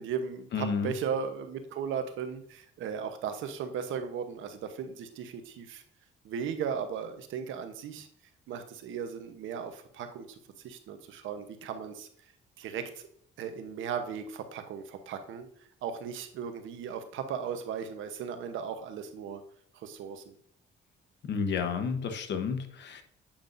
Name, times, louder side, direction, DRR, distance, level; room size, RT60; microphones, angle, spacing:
voice 1, 0.0-5.8 6.2-8.1 8.5-10.4 10.6-12.1 12.6-13.1 13.4-15.5 15.8-19.4 19.7-20.4, right 7 dB, 80° right, 8 dB, 0.9 m, -36 dB
voice 2, 0.5-0.9 21.2-23.0, left 5 dB, 60° left, 7 dB, 1.0 m, -31 dB
8.7 x 5.3 x 2.6 m, 0.66 s
cardioid pair, 90°, 20 cm